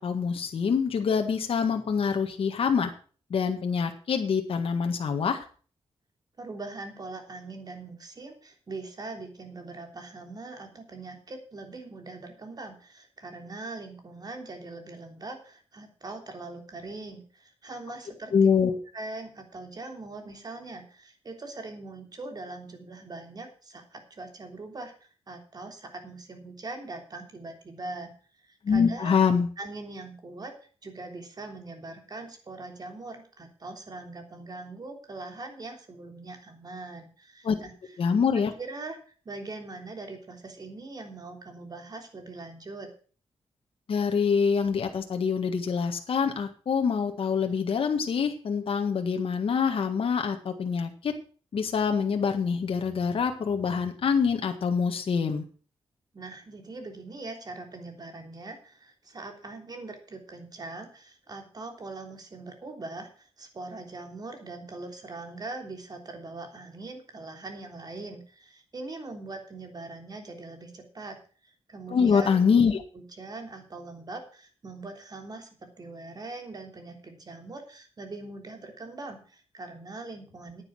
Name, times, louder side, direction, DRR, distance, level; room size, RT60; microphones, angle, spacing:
voice 1, 0.0-2.9 3.3-5.5 18.3-18.8 28.6-29.5 37.4-37.6 38.0-38.5 43.9-51.1 51.5-55.4 71.9-72.8, left 6 dB, 60° left, 4 dB, 1.7 m, -25 dB
voice 2, 6.4-18.3 18.9-28.1 28.4-29.2 29.6-30.5 30.8-37.7 38.6-39.0 39.2-42.9 56.1-71.2 71.4-72.5 72.9-80.6, right 3 dB, 40° right, 4 dB, 3.3 m, -41 dB
10.0 x 9.9 x 6.3 m, 0.40 s
cardioid pair, 95°, 10 cm